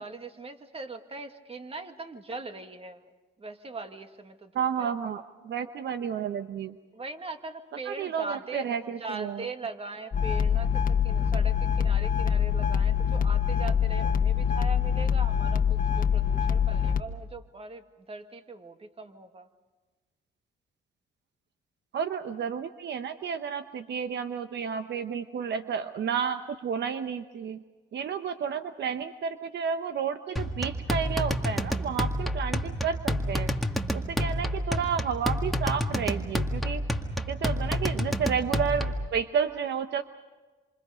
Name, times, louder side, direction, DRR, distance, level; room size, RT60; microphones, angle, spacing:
voice 1, 0.0-3.1 3.4-4.9 6.9-19.5, right 3 dB, 30° right, 7 dB, 2.1 m, -40 dB
voice 2, 4.5-6.7 7.9-9.4 21.9-27.6 27.9-33.5 33.9-36.8 37.3-40.0, right 7 dB, 60° right, 9 dB, 1.0 m, -31 dB
sound 1, 10.1-17.0, left 7 dB, 45° left, 1.3 m, -25 dB
sound 2, 30.4-39.1, equal, ahead, 1.9 m, -29 dB
27.0 x 27.0 x 5.1 m, 1.3 s
cardioid pair, 90°, 20 cm